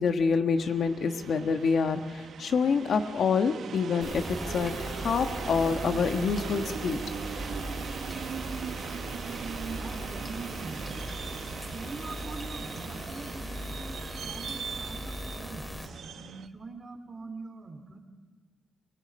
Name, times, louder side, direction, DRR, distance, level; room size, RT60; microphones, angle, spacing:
voice 1, 0.0-7.0, left 5 dB, 70° left, 7 dB, 1.3 m, -27 dB
sound 1, 0.6-16.5, right 7 dB, 85° right, 0.9 m, -39 dB
sound 2, 4.0-15.9, equal, 15° left, 2.6 m, -39 dB
voice 2, 9.8-10.8 11.5-15.7 16.0-18.0, right 3 dB, 35° right, 5 dB, 3.2 m, -43 dB
24.0 x 19.5 x 8.6 m, 1.3 s
wide cardioid pair, 125°, 0 cm